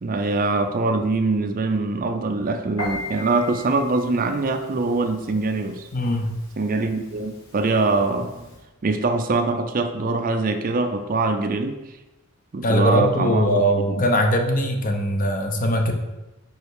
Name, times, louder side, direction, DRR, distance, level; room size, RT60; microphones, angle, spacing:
voice 1, 0.0-5.9 6.6-8.3 8.8-11.8 12.5-14.0, right 3 dB, 40° right, 6 dB, 0.5 m, -23 dB
Piano, 2.8-8.6, left 1 dB, 70° left, 2.4 m, -39 dB
voice 2, 5.9-6.3 12.6-15.9, equal, 40° left, 4 dB, 0.8 m, -21 dB
5.4 x 5.2 x 4.7 m, 1.0 s
head